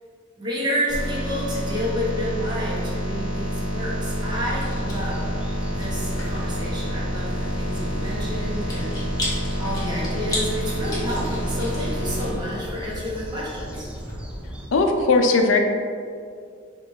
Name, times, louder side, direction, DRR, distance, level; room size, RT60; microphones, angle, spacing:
voice 1, 0.4-5.3 5.6-13.9, equal, 25° right, -7 dB, 1.1 m, -30 dB
sound 1, 0.9-12.3, equal, 45° right, 1.3 m, -28 dB
Chewing mastication, 3.9-14.1, left 1 dB, 20° left, 1.2 m, -37 dB
sound 2, 4.1-14.7, equal, 5° right, 0.4 m, -37 dB
voice 2, 14.7-15.6, left 3 dB, 75° left, 4 dB, 0.5 m, -18 dB
5.1 x 3.0 x 3.4 m, 2.2 s
head